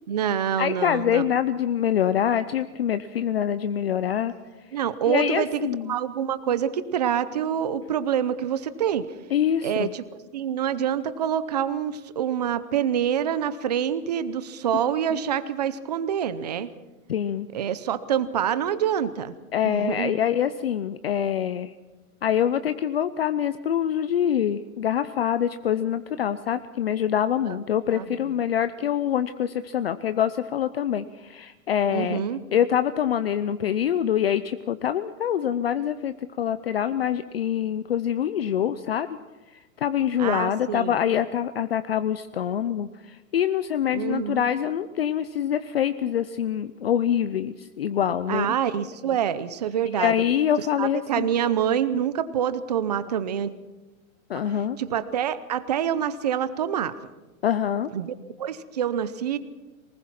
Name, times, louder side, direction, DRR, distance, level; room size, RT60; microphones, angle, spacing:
voice 1, 0.1-1.3 4.7-5.6 5.9-9.1 9.6-10.0 10.3-16.7 17.5-19.3 19.6-20.1 27.5-27.6 27.9-28.2 31.9-32.4 40.2-41.0 43.9-44.4 48.3-50.1 50.8-53.5 54.8-56.9 57.9-59.4, right 9 dB, 30° right, 14 dB, 0.7 m, -26 dB
voice 2, 0.6-4.3 5.1-5.9 9.3-9.9 15.1-15.2 17.1-17.5 19.5-21.7 22.2-32.2 32.5-39.1 39.8-48.5 49.9-51.3 54.3-54.8 57.4-57.9, left 9 dB, 45° left, 12 dB, 0.6 m, -25 dB
23.0 x 20.0 x 5.9 m, 1.1 s
hypercardioid pair, 175°, 42 cm